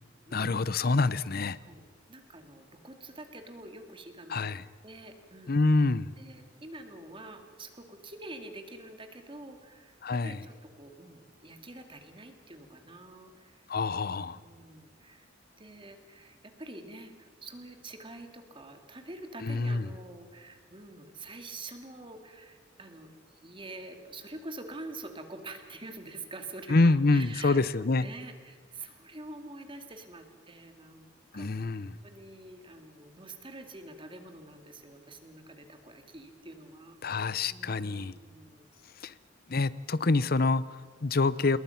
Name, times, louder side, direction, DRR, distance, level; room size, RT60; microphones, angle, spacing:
voice 1, 0.3-1.6 4.3-4.6 5.5-6.1 10.0-10.4 13.7-14.4 19.4-19.8 26.7-28.0 31.3-32.0 37.0-38.1 39.0-39.1 39.5-41.6, left 3 dB, 55° left, 0.7 m, -26 dB
voice 2, 2.1-4.5 4.8-5.6 6.2-10.0 10.2-13.7 14.1-15.3 15.6-27.7 28.0-31.1 31.3-37.0 37.4-38.7, right 2 dB, 25° right, 2.5 m, -46 dB
27.5 x 21.5 x 5.9 m
head